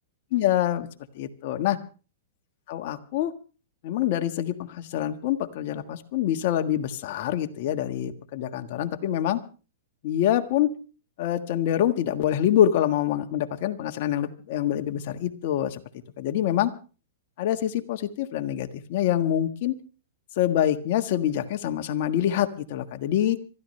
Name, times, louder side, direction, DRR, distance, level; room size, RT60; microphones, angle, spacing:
voice 1, 0.3-0.9 1.1-1.8 2.7-3.3 3.8-9.4 10.0-10.7 11.2-15.8 16.2-16.7 17.4-19.7 20.4-23.4, left 11 dB, 55° left, 7 dB, 1.5 m, -25 dB
26.0 x 13.5 x 3.3 m, 0.36 s
hypercardioid pair, 135°, 0 cm